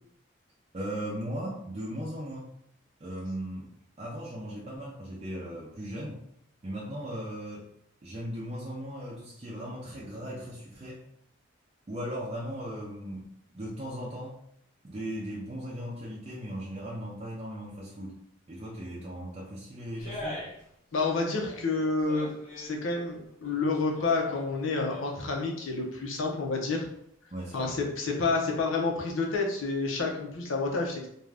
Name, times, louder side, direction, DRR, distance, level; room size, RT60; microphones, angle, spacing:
voice 1, 0.7-2.5 3.0-3.7 4.0-6.2 6.6-7.7 8.0-11.0 11.9-14.4 14.8-18.2 18.5-20.4 27.3-27.8, equal, 30° right, -5 dB, 0.5 m, -37 dB
sound 1, 20.0-20.7 20.9-22.7 23.3-25.3 25.7-25.8, left 1 dB, 35° left, 0.8 m, -43 dB
voice 2, 20.9-26.9 27.5-31.1, left 3 dB, 80° left, 1 dB, 0.6 m, -29 dB
2.5 x 2.3 x 3.3 m, 0.73 s
head